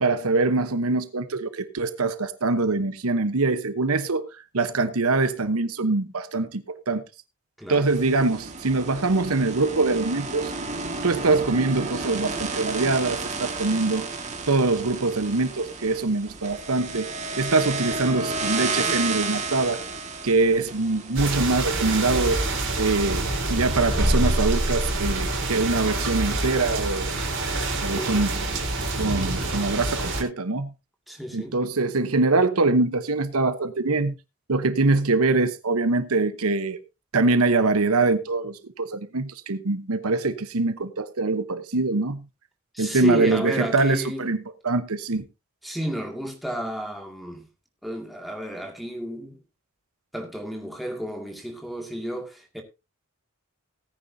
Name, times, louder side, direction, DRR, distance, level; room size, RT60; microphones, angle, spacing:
voice 1, 0.0-4.3 4.5-7.0 7.7-10.5 11.0-14.1 14.5-17.1 17.4-19.8 20.2-22.4 22.8-27.1 27.8-28.3 29.0-30.7 31.3-34.1 34.5-36.8 37.1-42.3 42.8-44.4 44.6-45.3, right 3 dB, 85° right, 1.0 m, -23 dB
voice 2, 7.6-7.9 27.9-28.3 31.1-31.6 42.7-44.3 45.6-47.5 47.8-49.4 50.1-52.6, equal, ahead, 2.2 m, -32 dB
sound 1, 7.8-22.0, right 3 dB, 30° right, 1.9 m, -32 dB
sound 2, 21.1-30.2, right 2 dB, 55° right, 4.0 m, -26 dB
18.0 x 9.7 x 2.8 m
head